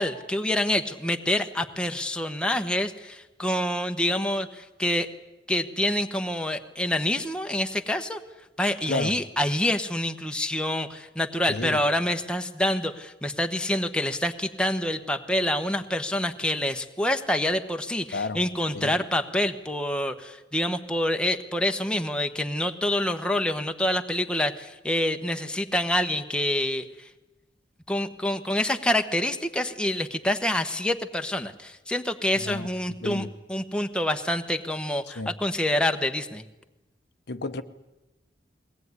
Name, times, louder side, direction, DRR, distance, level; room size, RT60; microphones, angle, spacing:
voice 1, 0.0-5.1 5.5-8.2 8.6-27.1 27.9-36.4, left 1 dB, 5° left, 1.1 m, -27 dB
voice 2, 11.5-11.8 18.1-18.4 18.7-18.9 32.4-33.3 35.1-35.3 37.3-37.6, left 3 dB, 65° left, 0.9 m, -32 dB
22.0 x 18.0 x 9.6 m
head